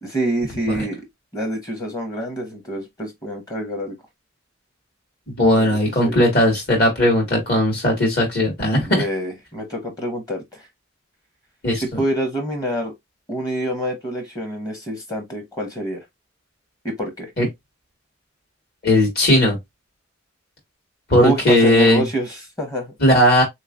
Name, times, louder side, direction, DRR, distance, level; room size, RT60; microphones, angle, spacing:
voice 1, 0.0-1.0 1.3-3.9 5.5-5.7 6.0-6.1 8.8-10.7 11.8-12.9 13.3-16.0 16.8-17.3 21.1-22.9, right 1 dB, 20° left, 0.9 m, -26 dB
voice 2, 5.4-9.0 11.6-12.0 17.4-17.5 18.8-19.6 21.1-22.0 23.0-23.4, left 1 dB, 50° left, 1.7 m, -17 dB
3.7 x 3.1 x 2.5 m
head